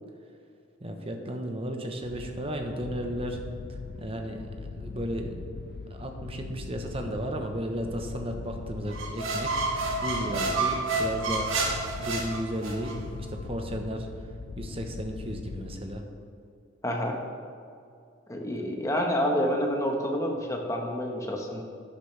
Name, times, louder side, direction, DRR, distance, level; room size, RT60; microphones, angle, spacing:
voice 1, 0.8-3.4 4.0-5.4 5.9-9.6 10.0-11.5 12.0-14.1 14.6-16.0, equal, 30° right, 4 dB, 1.0 m, -34 dB
sound 1, 2.0-16.3, left 4 dB, 55° left, 0.4 m, -41 dB
sound 2, 8.9-13.0, right 3 dB, 80° right, 1.6 m, -29 dB
voice 2, 16.8-17.2 18.3-21.6, equal, 15° left, 1 dB, 1.3 m, -28 dB
13.0 x 10.0 x 3.4 m, 2.4 s
head